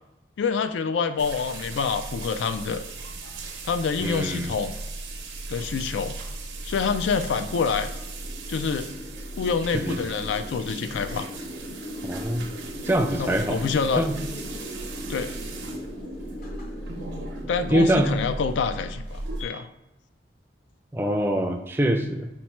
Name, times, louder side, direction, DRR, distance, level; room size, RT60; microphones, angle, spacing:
voice 1, 0.4-2.8 3.6-4.7 5.5-6.2 6.6-7.9 8.5-8.9 9.4-11.3 13.2-14.1 15.1-15.4 17.5-19.7, left 5 dB, 85° left, 9 dB, 0.3 m, -27 dB
sound 1, 1.2-19.4, right 2 dB, 85° right, 0.6 m, -37 dB
sound 2, 3.1-19.5, equal, 50° left, 0.8 m, -40 dB
voice 2, 4.0-4.6 9.7-10.1 12.0-12.5 12.8-13.7 14.0-14.2 17.6-18.1 20.9-22.3, right 1 dB, 10° right, 4 dB, 0.3 m, -24 dB
4.4 x 2.1 x 4.3 m, 0.94 s
head